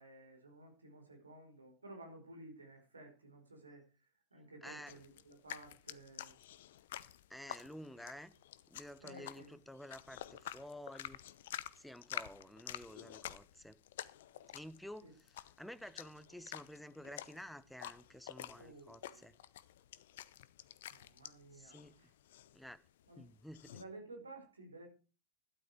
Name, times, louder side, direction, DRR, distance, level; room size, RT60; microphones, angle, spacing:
voice 1, 0.0-6.3 9.0-9.5 15.0-15.1 18.6-19.4 20.9-22.1 23.1-23.2 23.7-24.9, right 2 dB, 75° right, 4.8 m, -54 dB
voice 2, 4.6-5.0 7.3-8.3 8.7-11.2 11.8-13.8 14.5-19.3 21.5-22.0 22.5-22.8 23.2-23.8, equal, ahead, 0.9 m, -51 dB
sound 1, 4.9-23.8, left 12 dB, 55° left, 0.7 m, -50 dB
12.5 x 12.0 x 4.8 m
figure-of-eight pair, 90°, 0 cm